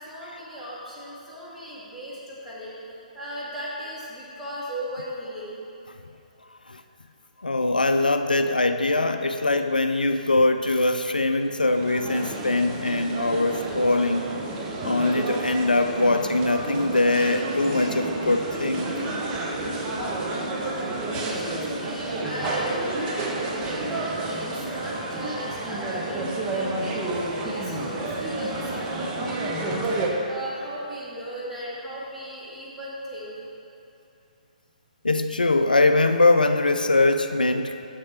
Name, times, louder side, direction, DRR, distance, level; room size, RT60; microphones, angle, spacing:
voice 1, 0.0-5.6 20.6-33.5, equal, ahead, -11 dB, 1.7 m, -37 dB
voice 2, 7.4-14.3 14.8-18.9 35.0-37.9, left 2 dB, 80° left, 8 dB, 0.3 m, -22 dB
sound 1, 11.5-30.1, right 2 dB, 20° right, 0.8 m, -30 dB
6.7 x 6.4 x 4.3 m, 2.7 s
figure-of-eight pair, 130°, 5 cm